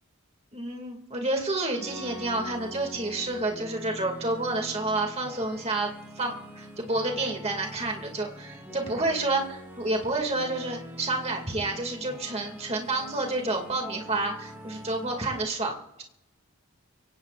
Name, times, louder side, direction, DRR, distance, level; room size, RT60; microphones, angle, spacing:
voice 1, 0.5-16.0, right 2 dB, 30° right, 2 dB, 2.2 m, -29 dB
sound 1, 1.7-15.4, equal, 10° right, 2.9 m, -44 dB
24.5 x 17.5 x 2.5 m, 0.85 s
head